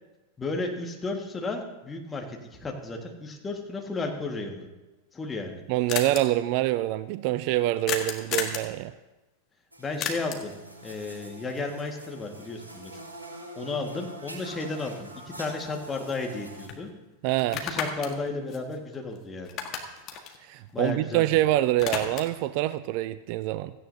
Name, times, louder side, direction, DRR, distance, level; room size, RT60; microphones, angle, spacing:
voice 1, 0.4-4.7 5.1-5.6 9.8-10.5 10.8-12.9 13.6-16.9 17.6-19.5 20.7-21.3, left 3 dB, 15° left, 2 dB, 1.8 m, -33 dB
sound 1, 4.9-5.0 5.2-5.3 5.5-5.6 5.9-6.2 7.9-8.7 10.0-10.5 14.7-14.8 15.2-16.4 16.7-16.8 17.4-19.2 19.4-21.3 21.6-22.4, left 7 dB, 35° left, 1.7 m, -33 dB
voice 2, 5.7-8.9 17.2-17.6 20.5-23.7, right 15 dB, 45° right, 15 dB, 0.4 m, -25 dB
sound 2, 9.7-16.7, right 1 dB, 80° right, 2.2 m, -45 dB
16.5 x 14.5 x 2.8 m, 1.1 s
figure-of-eight pair, 90°, 0 cm